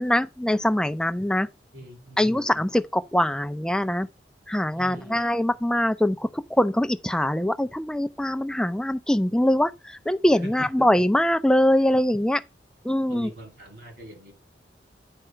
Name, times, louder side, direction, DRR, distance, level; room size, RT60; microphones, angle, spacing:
voice 1, 0.0-1.5 2.2-4.1 4.5-12.4 12.8-13.3, left 1 dB, 5° left, 0.4 m, -23 dB
voice 2, 1.7-2.3 4.8-5.2 10.4-10.7 13.1-14.3, equal, 65° right, 2.5 m, -42 dB
10.0 x 4.8 x 4.3 m
head